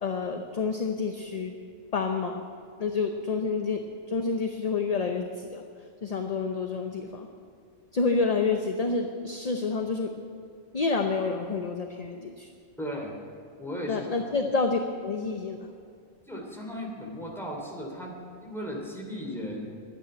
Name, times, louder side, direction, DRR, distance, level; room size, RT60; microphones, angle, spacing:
voice 1, 0.0-1.6 1.9-2.4 2.8-5.6 6.0-7.3 7.9-10.1 10.7-12.5 13.9-15.7, left 4 dB, 40° left, 4 dB, 0.8 m, -28 dB
voice 2, 12.8-13.2 13.6-14.1 16.3-19.7, equal, ahead, -1 dB, 2.9 m, -36 dB
12.0 x 9.4 x 9.0 m, 2.3 s
omnidirectional pair, 1.2 m